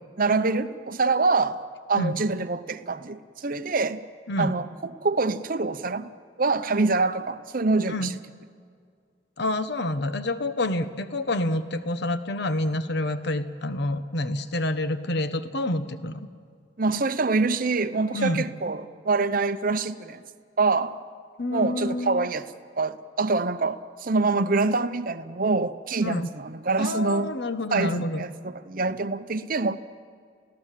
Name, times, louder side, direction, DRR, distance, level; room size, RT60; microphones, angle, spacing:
voice 1, 0.2-1.6 1.9-4.0 4.4-6.1 6.4-8.2 16.8-20.2 20.6-21.0 21.5-22.5 22.8-27.3 27.7-29.8, right 3 dB, 45° right, 0.8 m, -25 dB
voice 2, 9.4-16.3 18.1-18.4 21.4-22.3 26.0-26.3 26.8-28.2, left 1 dB, 55° left, 1.1 m, -28 dB
29.0 x 16.5 x 7.6 m
head